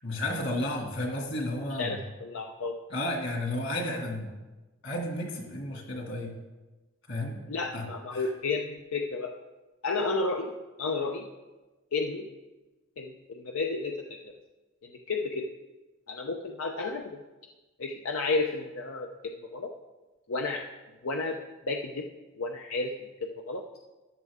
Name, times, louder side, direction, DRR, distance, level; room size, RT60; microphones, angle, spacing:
voice 1, 0.0-2.0 2.9-4.3 4.8-6.3 7.1-7.4 7.7-7.8 8.1-8.3, left 1 dB, 60° left, 1 dB, 2.5 m, -32 dB
voice 2, 1.8-2.8 7.5-9.3 9.8-10.5 10.8-11.3 11.9-12.3 13.0-14.2 14.8-15.5 16.1-17.2 17.8-19.1 19.5-19.7 20.3-20.6 21.0-21.4 21.7-22.1 22.4-23.1 23.5-23.6, left 3 dB, 85° left, 2 dB, 0.8 m, -31 dB
13.5 x 10.5 x 3.7 m, 1.2 s
head